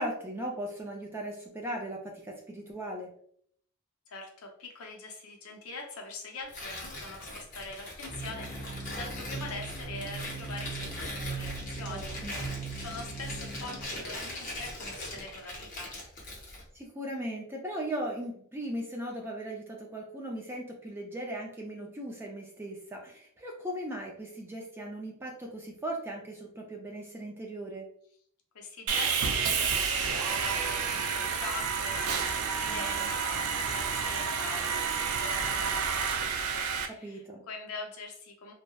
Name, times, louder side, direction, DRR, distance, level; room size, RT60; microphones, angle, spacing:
voice 1, 0.0-3.1 11.9-12.5 16.7-27.9 32.6-33.1 36.9-37.4, right 1 dB, 10° right, 0 dB, 0.3 m, -38 dB
voice 2, 4.1-12.1 12.8-15.9 28.5-34.7 35.0-38.5, left 3 dB, 80° left, 1 dB, 0.6 m, -43 dB
Tearing, 6.5-16.7, left 1 dB, 35° left, 0.6 m, -41 dB
sound 1, 8.1-13.8, right 4 dB, 55° right, 1.0 m, -40 dB
Sawing, 28.9-36.9, right 6 dB, 85° right, 0.4 m, -30 dB
2.7 x 2.0 x 2.2 m, 0.62 s
head